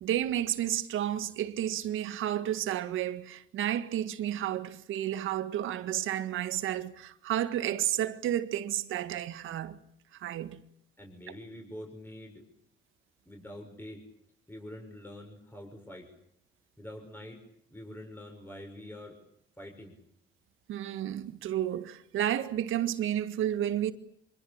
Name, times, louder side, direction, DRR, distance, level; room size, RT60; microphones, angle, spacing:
voice 1, 0.0-9.8 10.1-10.6 20.7-23.9, right 11 dB, 85° right, 1.8 m, -31 dB
voice 2, 11.0-12.4 13.3-14.0 14.5-16.1 16.8-17.4 17.7-19.2 19.6-19.9, left 1 dB, 10° left, 6.8 m, -45 dB
26.0 x 22.5 x 8.9 m
cardioid pair, 90°, 20 cm